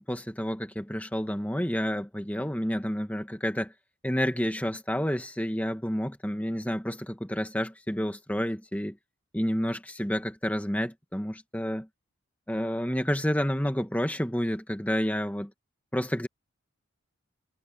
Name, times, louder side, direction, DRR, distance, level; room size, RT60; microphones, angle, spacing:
voice 1, 0.0-3.7 4.0-9.0 9.3-11.9 12.5-15.5 15.9-16.3, equal, 5° left, 1.5 m, -29 dB
head